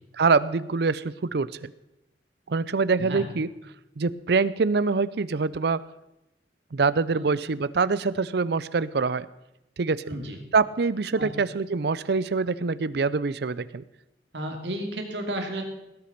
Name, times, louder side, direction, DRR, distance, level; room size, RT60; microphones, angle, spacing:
voice 1, 0.2-1.7 2.5-3.5 4.0-5.8 6.7-9.3 9.8-10.0 10.5-13.8, right 4 dB, 65° right, 17 dB, 0.5 m, -25 dB
voice 2, 10.1-10.4 11.2-11.3 14.3-15.6, right 1 dB, 90° right, 3 dB, 2.6 m, -32 dB
17.5 x 8.5 x 5.9 m, 0.88 s
head